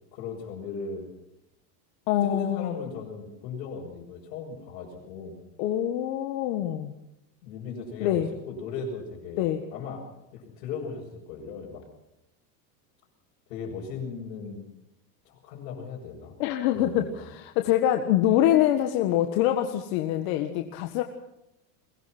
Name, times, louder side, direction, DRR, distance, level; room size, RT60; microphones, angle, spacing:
voice 1, 0.1-1.1 2.2-5.4 7.4-9.5 9.7-11.8 13.5-14.6 15.2-16.4 16.7-17.3, left 5 dB, 80° left, -5 dB, 6.2 m, -37 dB
voice 2, 2.1-2.8 5.6-6.9 8.0-8.3 9.4-9.6 16.4-21.0, left 12 dB, 60° left, 5 dB, 1.7 m, -25 dB
22.5 x 19.5 x 6.1 m, 0.87 s
supercardioid pair, 155°, 48 cm